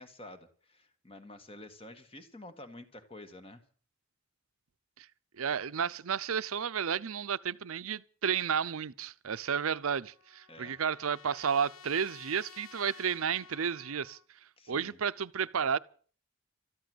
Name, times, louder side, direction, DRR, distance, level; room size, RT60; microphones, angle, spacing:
voice 1, 0.0-3.6 10.5-10.8 14.6-15.0, left 1 dB, 25° left, 1.7 m, -49 dB
voice 2, 5.4-14.2 14.7-15.8, right 7 dB, 85° right, 0.6 m, -32 dB
Trumpet, 9.5-14.3, left 7 dB, 80° left, 0.9 m, -54 dB
14.0 x 11.5 x 7.8 m
head